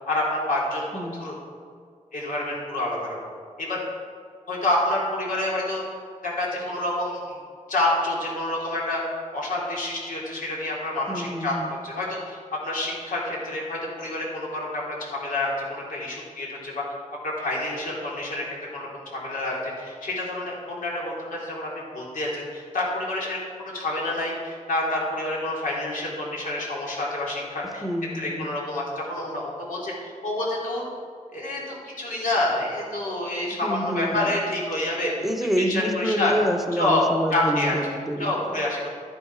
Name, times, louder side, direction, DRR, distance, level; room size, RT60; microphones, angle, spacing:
voice 1, 0.1-1.3 2.1-3.2 3.6-3.8 4.5-5.8 6.2-7.4 7.7-9.0 9.3-11.5 11.8-12.4 12.6-16.7 17.2-18.4 18.7-23.4 23.7-27.8 28.1-30.9 31.3-35.1 35.6-36.3 36.7-37.0 37.3-38.9, left 1 dB, 85° left, -4 dB, 3.6 m, -28 dB
voice 2, 0.9-1.3 11.1-11.8 27.8-28.5 33.5-34.4 35.2-38.6, equal, ahead, 6 dB, 0.9 m, -28 dB
13.0 x 10.5 x 4.8 m, 2.1 s
wide cardioid pair, 155°, 14 cm